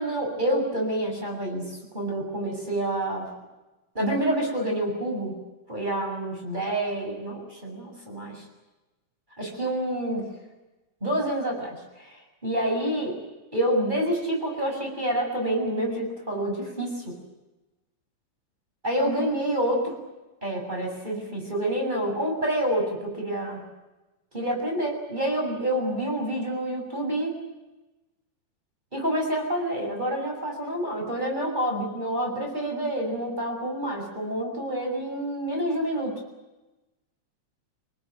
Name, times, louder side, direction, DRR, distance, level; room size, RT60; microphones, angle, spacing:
voice 1, 0.0-3.3 3.9-5.4 5.7-8.5 9.4-10.3 11.0-13.2 13.5-17.2 18.8-19.8 20.4-23.6 24.3-27.3 28.9-36.1, right 1 dB, 10° right, 1 dB, 7.0 m, -28 dB
26.0 x 19.5 x 9.2 m, 1.1 s
omnidirectional pair, 5.3 m